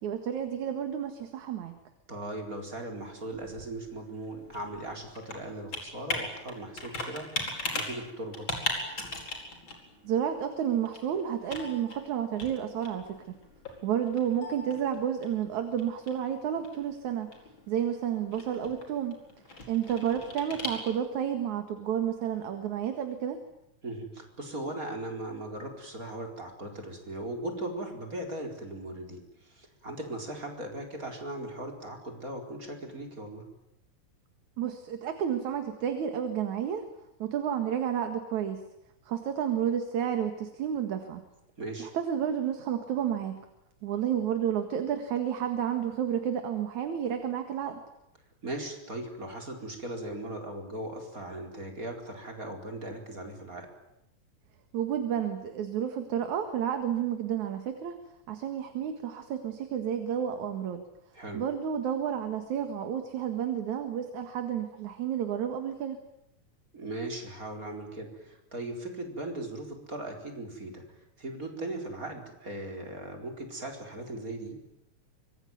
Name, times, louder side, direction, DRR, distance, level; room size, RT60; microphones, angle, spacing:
voice 1, 0.0-1.7 10.0-13.2 13.8-17.3 17.7-19.2 19.7-23.4 34.6-36.8 37.2-38.6 39.1-41.2 41.8-43.4 43.8-47.8 54.7-58.0 58.3-60.8 61.3-66.0, right 9 dB, 75° right, 6 dB, 3.2 m, -31 dB
voice 2, 2.1-8.5 23.8-33.4 41.6-41.9 48.4-53.7 61.1-61.4 66.7-74.6, right 1 dB, 25° right, 3 dB, 4.7 m, -38 dB
Computer keyboard, 3.0-21.3, left 2 dB, 40° left, 5.4 m, -40 dB
25.0 x 23.5 x 9.5 m, 0.83 s
omnidirectional pair, 3.4 m